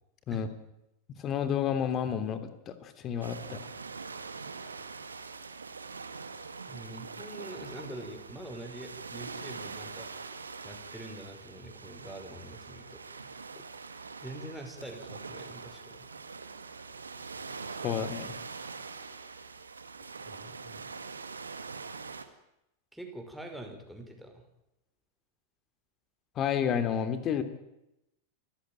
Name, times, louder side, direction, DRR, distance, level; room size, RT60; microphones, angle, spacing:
voice 1, 1.2-3.6 17.8-18.3 26.4-27.4, left 8 dB, 30° left, 10 dB, 3.2 m, -30 dB
sound 1, 3.2-22.3, right 4 dB, 75° right, 2.0 m, -43 dB
voice 2, 6.7-10.1 10.6-13.0 14.2-16.1 20.0-20.9 22.9-24.4, right 1 dB, ahead, 2 dB, 5.5 m, -45 dB
28.5 x 15.5 x 9.0 m, 0.88 s
figure-of-eight pair, 90°, 0 cm